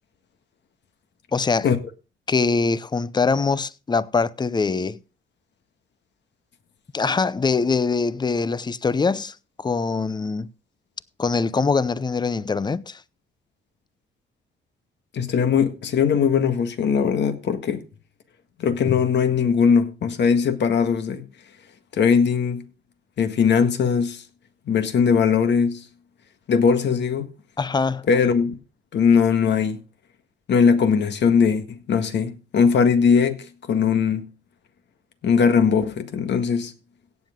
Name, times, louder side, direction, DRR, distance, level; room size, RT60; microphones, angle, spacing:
voice 1, 1.3-1.7 2.3-5.0 6.9-10.5 11.2-13.0 27.6-28.1, left 4 dB, 20° left, 0.6 m, -23 dB
voice 2, 15.1-17.9 18.6-21.2 21.9-22.6 23.2-24.2 24.7-25.9 26.5-27.3 28.1-28.6 28.9-29.8 30.5-34.3 35.2-36.7, left 6 dB, 60° left, 1.7 m, -20 dB
17.0 x 7.4 x 3.7 m
cardioid pair, 90°, 20 cm